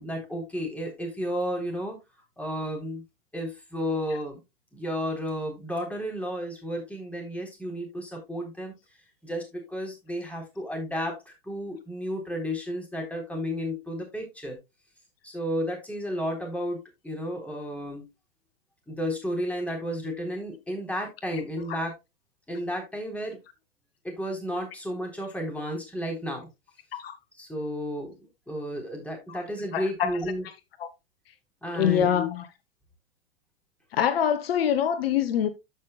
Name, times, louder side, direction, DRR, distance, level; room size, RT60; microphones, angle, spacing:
voice 1, 0.0-2.0 2.4-3.0 3.3-4.4 4.7-8.7 9.2-14.6 15.2-18.0 18.9-21.9 22.5-23.4 24.0-26.5 27.3-30.5 31.6-32.3, equal, 5° left, 3.8 m, -32 dB
voice 2, 29.7-30.1 30.8-30.9 31.7-32.4 33.9-35.5, left 9 dB, 75° left, 1.1 m, -24 dB
14.0 x 5.7 x 2.3 m
hypercardioid pair, 105°, 30 cm